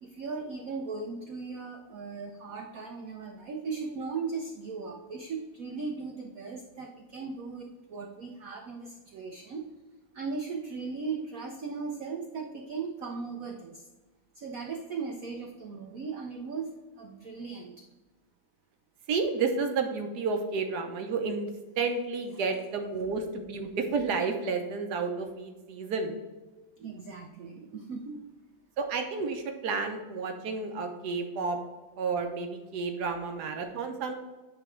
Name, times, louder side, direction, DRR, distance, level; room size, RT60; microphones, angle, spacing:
voice 1, 0.0-9.6 10.1-13.8 14.3-16.7 17.0-17.8 26.8-28.2, right 4 dB, 80° right, 2 dB, 0.7 m, -37 dB
voice 2, 19.1-21.5 21.8-26.1 28.8-31.6 32.0-34.1, right 4 dB, 65° right, 4 dB, 1.1 m, -31 dB
9.1 x 3.3 x 4.4 m, 1.2 s
omnidirectional pair, 2.3 m